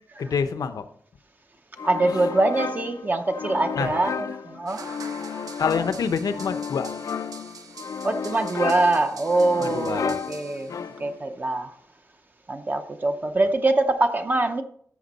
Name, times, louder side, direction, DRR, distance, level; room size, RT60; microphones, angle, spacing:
voice 1, 0.2-0.8 3.7-3.9 5.6-6.9 9.6-10.2, left 6 dB, 80° left, 0.8 m, -26 dB
sound 1, 1.8-11.3, left 6 dB, 60° left, 0.4 m, -33 dB
voice 2, 1.8-4.8 5.2-5.4 8.0-10.7 11.0-11.7 12.5-14.6, right 2 dB, 30° right, 0.6 m, -24 dB
sound 2, 4.7-11.1, right 5 dB, 75° right, 0.8 m, -45 dB
14.5 x 6.1 x 4.1 m
wide cardioid pair, 170°, 6 cm